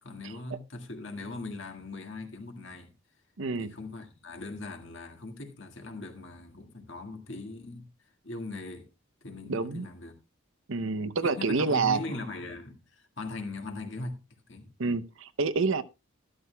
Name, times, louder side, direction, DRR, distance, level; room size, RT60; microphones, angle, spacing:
voice 1, 0.0-2.9 3.6-7.9 8.2-8.9 9.2-10.2 11.2-14.2 14.5-14.7, left 2 dB, 55° left, 1.9 m, -40 dB
voice 2, 3.4-3.7 9.5-9.9 10.7-12.2 14.8-15.8, right 4 dB, 65° right, 0.7 m, -28 dB
12.5 x 12.5 x 2.2 m
head